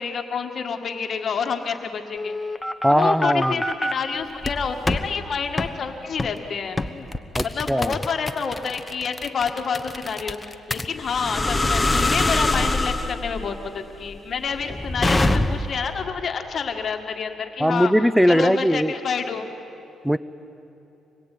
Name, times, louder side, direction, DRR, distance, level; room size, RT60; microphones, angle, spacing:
voice 1, 0.0-2.3 2.9-6.8 7.4-17.9 18.3-19.5, left 6 dB, 50° left, 5 dB, 1.9 m, -28 dB
sound 1, 2.2-3.9 4.4-5.1 5.6-5.7 6.2-6.4 6.8-15.8, left 2 dB, 15° left, 1.2 m, -24 dB
voice 2, 2.8-3.6 7.3-8.0 17.6-18.9 20.0-20.2, equal, ahead, 16 dB, 0.7 m, -19 dB
26.0 x 21.5 x 9.4 m, 3.0 s
cardioid pair, 90°, 0 cm